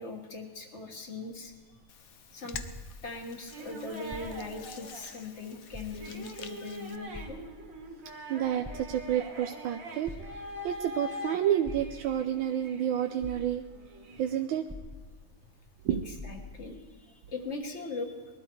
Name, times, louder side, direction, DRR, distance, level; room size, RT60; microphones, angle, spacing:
voice 1, 0.0-1.5 2.3-2.6 3.0-7.4 15.9-18.2, left 3 dB, 35° left, 3 dB, 1.7 m, -40 dB
sound 1, 1.3-3.4 4.0-4.7 5.1-5.2 5.7-6.4 7.1-7.9 8.5-9.3 10.0-10.8 11.6-12.3 12.9-13.0 13.2-13.9 14.7-15.5 15.7-15.8 16.1-16.8 17.5-17.6, left 2 dB, 20° right, 0.3 m, -45 dB
Hands, 1.9-7.0, left 7 dB, 60° left, 0.9 m, -48 dB
sound 2, 3.5-13.4 13.7-14.4, equal, 40° right, 2.1 m, -44 dB
voice 2, 8.3-13.6 14.2-14.7 15.8-16.0, right 10 dB, 75° right, 5 dB, 1.4 m, -30 dB
20.5 x 13.0 x 4.6 m, 1.4 s
omnidirectional pair, 2.3 m